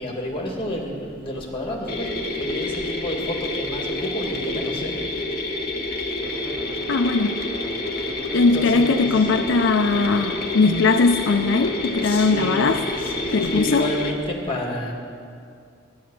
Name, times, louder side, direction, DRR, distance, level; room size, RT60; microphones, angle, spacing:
voice 1, 0.0-4.9 8.4-9.1 12.0-14.9, left 1 dB, 25° left, 0 dB, 2.3 m, -30 dB
sound 1, 1.9-14.1, left 2 dB, 50° left, 1.4 m, -29 dB
sound 2, 6.2-13.6, right 1 dB, 50° right, 2.1 m, -39 dB
voice 2, 6.9-7.4 8.3-12.8 13.3-13.9, left 4 dB, 70° left, 6 dB, 0.5 m, -19 dB
13.0 x 10.5 x 7.4 m, 2.4 s
head